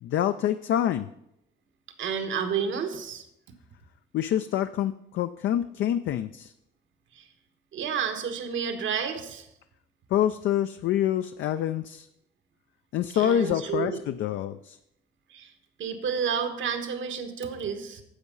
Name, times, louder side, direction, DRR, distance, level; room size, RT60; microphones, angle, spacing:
voice 1, 0.0-1.1 4.1-6.5 10.1-12.1 12.9-14.8, left 10 dB, 70° left, 10 dB, 0.4 m, -26 dB
voice 2, 2.0-3.2 7.1-7.2 7.7-9.5 13.1-14.0 15.3-15.5 15.8-18.0, right 7 dB, 75° right, 7 dB, 1.4 m, -30 dB
10.0 x 7.2 x 5.5 m, 0.80 s
cardioid pair, 90°, 20 cm